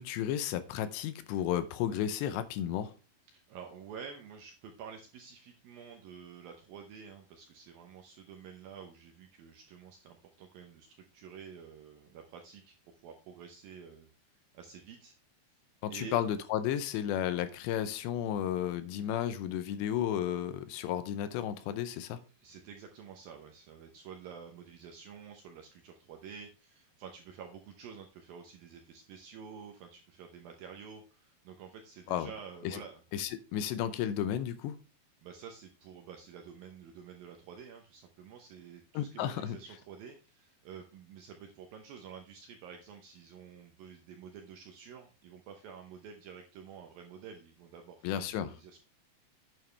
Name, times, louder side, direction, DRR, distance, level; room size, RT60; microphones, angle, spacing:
voice 1, 0.0-2.9 15.8-22.2 32.1-32.3 32.6-32.8 33.1-34.8 38.9-39.6 48.0-48.5, left 10 dB, 80° left, 2.8 m, -33 dB
voice 2, 3.3-12.8 13.0-14.1 14.5-15.2 15.9-16.2 22.3-33.0 35.2-48.8, right 7 dB, 75° right, 2.1 m, -49 dB
9.0 x 8.9 x 3.3 m
omnidirectional pair, 5.2 m